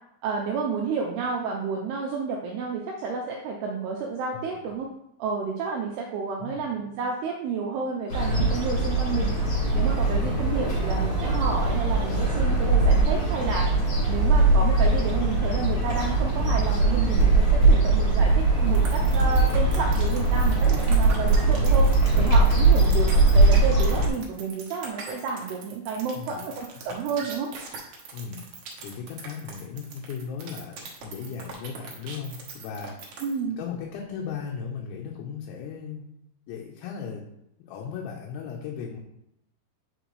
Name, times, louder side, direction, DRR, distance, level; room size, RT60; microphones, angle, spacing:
voice 1, 0.2-4.9 5.2-9.3 9.7-13.7 14.1-21.9 22.2-27.5 33.2-33.6, right 5 dB, 90° right, 0 dB, 2.3 m, -30 dB
sound 1, 8.1-24.1, right 2 dB, 40° left, 1.9 m, -21 dB
sound 2, 18.7-33.4, right 5 dB, 75° right, 1.8 m, -41 dB
voice 2, 26.1-26.5 26.8-26.9 28.1-28.5 28.8-33.2 33.6-36.1 36.5-37.3 37.6-39.0, left 6 dB, 80° left, -2 dB, 3.1 m, -37 dB
9.0 x 4.9 x 3.1 m, 0.78 s
omnidirectional pair, 5.4 m